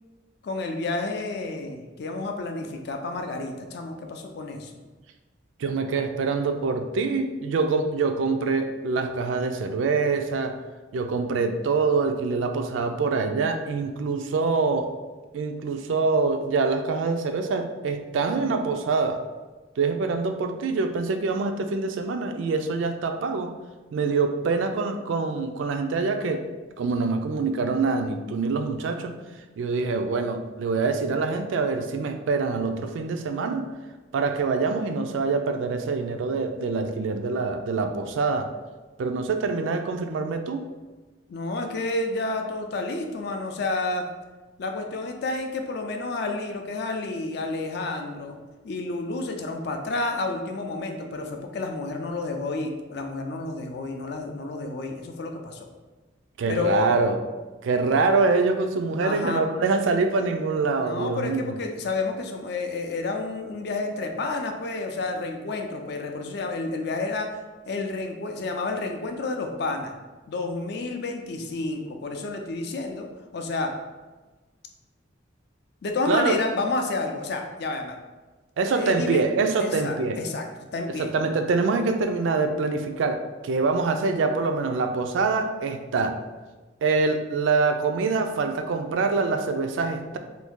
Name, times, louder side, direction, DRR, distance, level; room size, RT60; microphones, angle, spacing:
voice 1, 0.4-4.7 41.3-44.1 44.6-48.4 48.6-55.7 56.5-56.9 59.0-59.4 60.8-67.3 67.7-69.9 70.3-73.1 73.3-73.7 75.8-78.0 78.6-79.2 79.6-81.1, left 3 dB, 55° left, 4 dB, 0.4 m, -30 dB
voice 2, 5.6-10.6 10.9-14.9 15.3-19.2 19.8-23.5 23.9-26.4 26.8-29.1 29.6-33.7 34.1-38.5 39.0-40.7 56.4-57.2 57.6-61.5 76.1-76.4 78.6-80.2 81.0-86.2 86.8-90.2, right 4 dB, 75° right, 6 dB, 0.3 m, -25 dB
2.6 x 2.6 x 3.5 m, 1.2 s
head